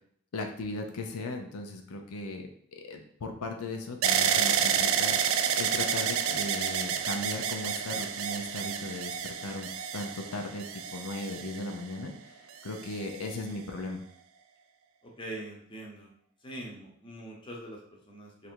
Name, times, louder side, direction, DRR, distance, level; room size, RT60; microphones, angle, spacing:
voice 1, 0.3-12.3 12.6-14.0, left 2 dB, 85° left, 3 dB, 0.5 m, -37 dB
sound 1, 4.0-12.0 12.7-13.4, right 8 dB, 65° right, 0.3 m, -29 dB
voice 2, 15.0-16.1 16.4-18.5, right 1 dB, 20° left, -1 dB, 0.8 m, -43 dB
3.2 x 2.5 x 4.4 m, 0.66 s
head